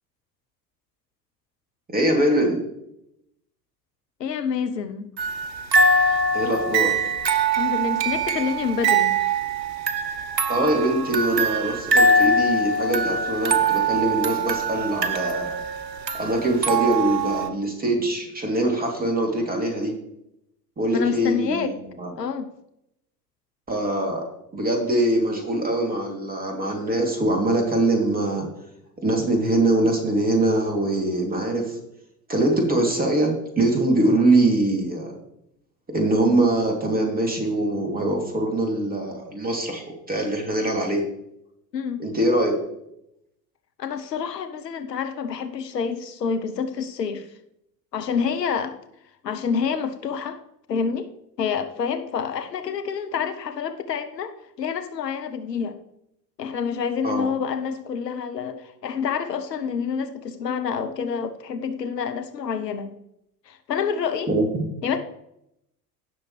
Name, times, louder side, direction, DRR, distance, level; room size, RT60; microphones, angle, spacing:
voice 1, 1.9-2.6 6.3-6.9 10.5-15.6 16.2-19.9 20.8-22.1 23.7-24.3 24.5-28.5 29.0-31.8 32.3-35.1 35.9-41.0 42.0-42.5 57.0-57.3 64.3-64.7, right 1 dB, 15° right, 2 dB, 2.8 m, -23 dB
voice 2, 4.2-5.1 7.6-9.1 20.9-21.7 22.2-22.5 41.7-42.0 43.8-47.3 47.9-48.8 49.2-50.4 50.7-51.1 51.4-55.8 56.4-62.9 63.5-64.3 64.8-65.0, left 6 dB, 75° left, 8 dB, 0.9 m, -27 dB
sound 1, 5.2-17.5, right 3 dB, 80° right, 0.9 m, -23 dB
16.5 x 6.4 x 3.2 m, 0.80 s
figure-of-eight pair, 75°, 49 cm